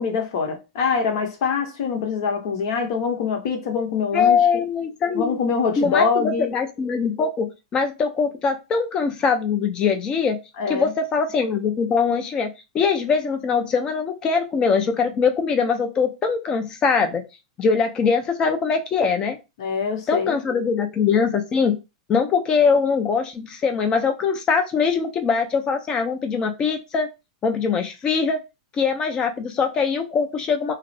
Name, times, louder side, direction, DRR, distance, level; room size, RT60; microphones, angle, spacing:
voice 1, 0.0-4.4 5.1-6.5 10.6-10.9 19.6-20.4, left 5 dB, 60° left, 0.8 m, -24 dB
voice 2, 4.1-5.4 5.8-10.4 10.7-17.2 17.6-19.4 20.1-21.8 22.1-27.1 27.4-28.4 28.8-30.7, left 5 dB, 25° left, 0.5 m, -22 dB
2.4 x 2.0 x 2.6 m
hypercardioid pair, 130°, 3 cm